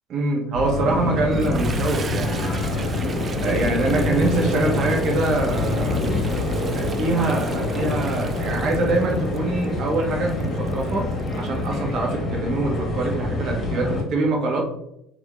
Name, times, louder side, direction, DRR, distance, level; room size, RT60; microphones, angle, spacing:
voice 1, 0.1-2.6 3.4-6.1 6.7-14.6, right 2 dB, 50° right, 0 dB, 1.2 m, -24 dB
sound 1, 0.5-14.0, left 2 dB, 40° left, 1.5 m, -26 dB
sound 2, 0.7-10.7, left 2 dB, 65° left, 0.7 m, -37 dB
Toilet flush, 1.2-11.7, right 5 dB, 35° right, 0.4 m, -38 dB
3.6 x 3.5 x 3.3 m, 0.79 s
hypercardioid pair, 65°, 0 cm